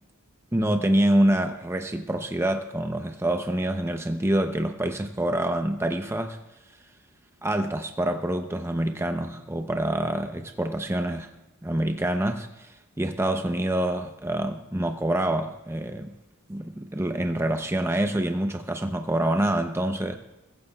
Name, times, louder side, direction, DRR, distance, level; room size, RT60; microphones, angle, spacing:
voice 1, 0.5-6.4 7.4-11.3 11.6-16.1 16.5-20.2, right 1 dB, 10° right, 5 dB, 0.6 m, -26 dB
22.5 x 15.0 x 2.3 m, 1.0 s
head